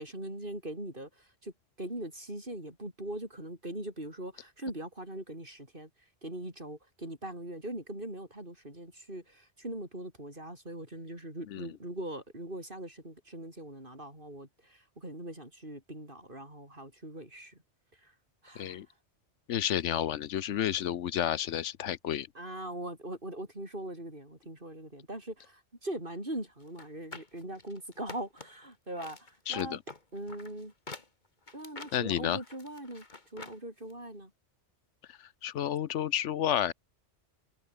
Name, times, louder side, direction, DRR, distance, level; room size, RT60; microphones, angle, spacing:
voice 1, 0.0-1.5 1.8-5.9 6.2-17.6 17.9-18.1 18.4-18.8 22.3-29.8 30.1-30.7 31.5-33.1 33.3-34.3, right 1 dB, 45° right, 7.8 m, -41 dB
voice 2, 18.6-18.9 19.5-22.3 29.5-29.8 31.9-32.4 35.1-36.7, left 10 dB, 80° left, 1.1 m, -31 dB
sound 1, 26.7-28.7 29.0-33.6 33.9-34.0, left 3 dB, 40° left, 2.2 m, -47 dB
omnidirectional pair, 1.2 m